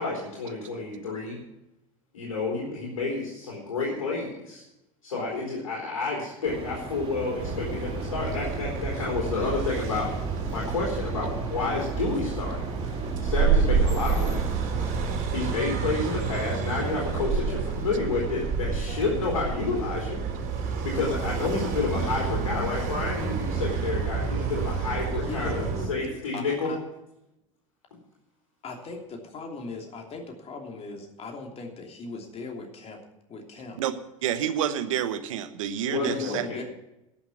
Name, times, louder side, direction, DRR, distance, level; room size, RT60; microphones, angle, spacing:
voice 1, 0.0-1.4 2.1-4.7 5.0-10.1 10.5-14.5 15.3-20.2 20.8-26.7 35.8-36.6, left 3 dB, 80° left, -3 dB, 3.7 m, -30 dB
sound 1, 6.4-15.2, right 2 dB, 30° right, 3.8 m, -38 dB
sound 2, 7.4-25.9, right 5 dB, 50° right, 3.7 m, -29 dB
voice 2, 25.1-25.7 26.3-26.8 28.6-33.0 33.3-33.8 36.0-36.6, left 4 dB, 35° left, 3 dB, 3.0 m, -38 dB
voice 3, 34.2-36.4, right 10 dB, 75° right, 10 dB, 1.1 m, -28 dB
12.0 x 7.3 x 9.5 m, 0.89 s
hypercardioid pair, 75°, 17 cm